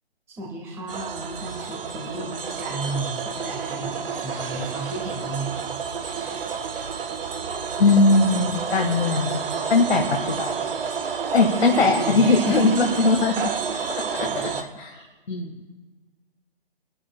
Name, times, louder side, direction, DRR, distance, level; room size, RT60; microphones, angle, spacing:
voice 1, 0.4-5.9 11.6-12.7 14.1-14.6 14.9-15.1, right 1 dB, 10° right, -3 dB, 1.4 m, -33 dB
sound 1, 0.9-14.6, right 6 dB, 60° right, 1.2 m, -30 dB
voice 2, 7.8-9.4 9.7-10.5 11.3-14.5 14.8-15.0 15.3-15.5, left 3 dB, 75° left, 0 dB, 1.5 m, -20 dB
29.5 x 12.5 x 2.2 m, 1.2 s
hypercardioid pair, 150°, 32 cm